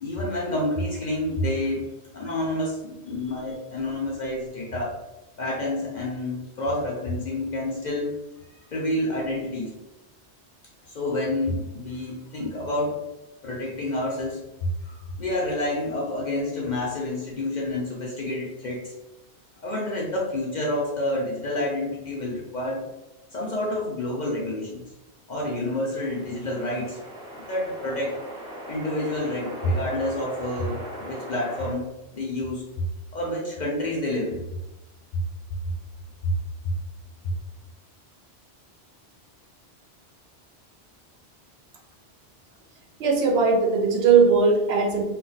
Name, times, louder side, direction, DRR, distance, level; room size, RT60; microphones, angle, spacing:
voice 1, 0.0-5.0 5.4-8.2 8.7-9.7 10.8-13.0 13.4-14.4 14.8-18.9 19.6-22.9 23.3-24.9 25.3-27.0 27.5-28.2 28.7-32.6 33.1-34.4 36.2-36.3, left 1 dB, 55° left, -2 dB, 0.5 m, -28 dB
sound 1, 26.0-31.7, equal, 5° right, 0.4 m, -39 dB
voice 2, 43.0-45.0, right 5 dB, 75° right, 2 dB, 0.8 m, -19 dB
2.3 x 2.2 x 3.8 m, 0.98 s
omnidirectional pair, 1.1 m